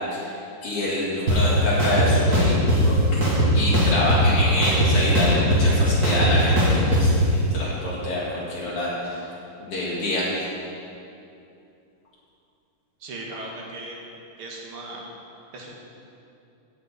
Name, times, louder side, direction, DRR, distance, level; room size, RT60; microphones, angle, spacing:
voice 1, 0.6-3.2 3.5-9.2 9.6-10.3, left 1 dB, 90° left, -7 dB, 3.1 m, -26 dB
sound 1, 1.3-1.4 1.8-2.8 3.2-4.3 4.6-7.0, right 1 dB, 45° right, 2.8 m, -19 dB
voice 2, 13.0-13.9 14.4-15.0 15.5-15.7, right 2 dB, 75° right, -1 dB, 2.4 m, -37 dB
16.0 x 7.7 x 4.2 m, 2.7 s
omnidirectional pair, 2.4 m